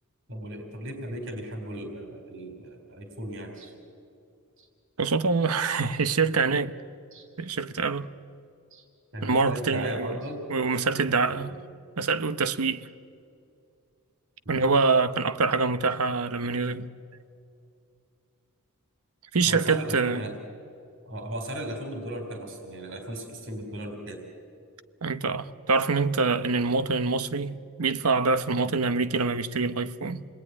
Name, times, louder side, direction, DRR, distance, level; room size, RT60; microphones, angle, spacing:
voice 1, 0.3-3.7 4.6-4.7 5.9-6.0 7.1-7.3 8.7-8.9 9.1-11.5 14.5-14.8 19.4-20.4 21.1-24.2, right 1 dB, 60° right, 4.0 m, -37 dB
voice 2, 5.0-6.8 7.4-8.1 9.2-10.2 10.5-11.5 12.0-12.9 14.5-16.9 19.3-20.2 25.0-30.3, right 4 dB, 80° right, 1.0 m, -25 dB
29.0 x 20.5 x 9.8 m
head